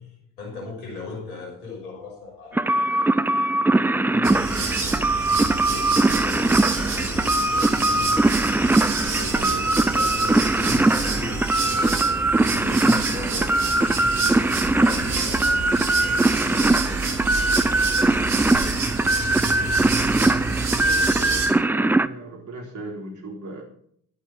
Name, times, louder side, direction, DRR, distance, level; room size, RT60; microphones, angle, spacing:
voice 1, 0.0-3.3 3.8-8.2 9.0-18.7, left 3 dB, 75° left, -1 dB, 6.4 m, -39 dB
sound 1, 2.5-22.1, right 2 dB, 5° right, 0.4 m, -21 dB
sound 2, 4.2-21.5, right 4 dB, 70° right, 2.8 m, -28 dB
sound 3, 4.3-11.7, left 3 dB, 40° left, 4.7 m, -40 dB
voice 2, 9.3-9.8 12.0-12.3 20.8-23.6, right 2 dB, 40° right, -1 dB, 3.7 m, -37 dB
11.5 x 11.5 x 5.6 m, 0.65 s
figure-of-eight pair, 45°, 45 cm